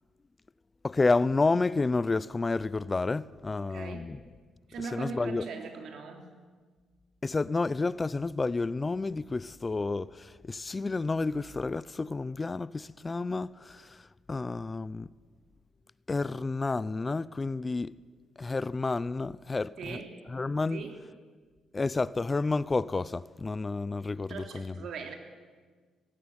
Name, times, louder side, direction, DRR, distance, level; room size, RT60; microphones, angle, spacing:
voice 1, 0.8-4.2 4.9-5.4 7.2-15.1 16.1-18.0 18.4-20.0 20.3-20.8 21.7-24.9, left 3 dB, 25° left, 0.5 m, -30 dB
voice 2, 3.6-4.2 4.7-6.3 19.8-20.2 20.7-21.0 24.3-25.1, right 5 dB, 70° right, 3.2 m, -40 dB
18.0 x 16.5 x 9.6 m
cardioid pair, 90°, 0 cm